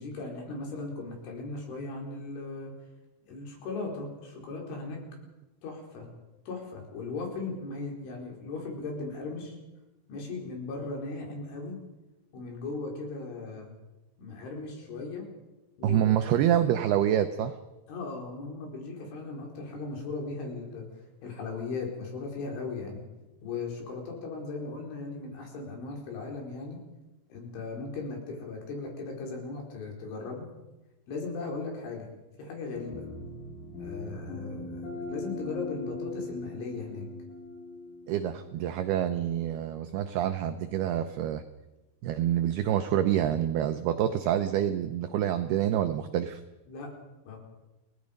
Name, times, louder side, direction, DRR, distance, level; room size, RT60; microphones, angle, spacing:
voice 1, 0.0-2.7 3.3-5.0 5.6-6.1 6.5-9.6 10.1-11.8 12.3-13.7 14.2-15.3 15.8-16.1 17.9-20.8 21.2-23.0 23.4-26.8 27.3-30.5 31.1-32.1 32.4-33.1 33.8-37.1 46.7-46.9 47.3-47.4, left 3 dB, 70° left, 0 dB, 7.0 m, -37 dB
voice 2, 15.8-17.6 38.1-41.4 42.0-46.4, right 11 dB, 90° right, 9 dB, 2.2 m, -27 dB
sound 1, 32.7-39.3, left 2 dB, 90° left, 7.8 m, -40 dB
29.5 x 19.0 x 5.3 m, 1.0 s
omnidirectional pair, 5.7 m